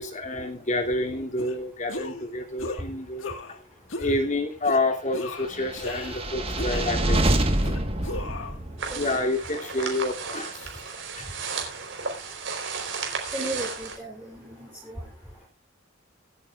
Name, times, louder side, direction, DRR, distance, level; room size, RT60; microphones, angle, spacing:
voice 1, 0.0-3.4 4.0-7.5 8.1-10.8 11.1-11.3 11.9-12.1 13.4-13.5, left 2 dB, 40° left, 3 dB, 2.8 m, -29 dB
sound 1, 1.4-1.6 1.9-2.3 2.6-2.8 3.2-3.6 3.9-4.2 4.6-4.8 5.1-6.3 6.6-7.2 7.6-8.6, left 2 dB, 85° left, 1.8 m, -36 dB
sound 2, 5.7-9.1, right 1 dB, 30° right, 1.5 m, -26 dB
sound 3, 8.8-14.0, right 5 dB, 70° right, 4.3 m, -34 dB
voice 2, 13.3-15.0, right 1 dB, 10° right, -3 dB, 3.9 m, -35 dB
25.0 x 9.2 x 2.5 m, 0.27 s
head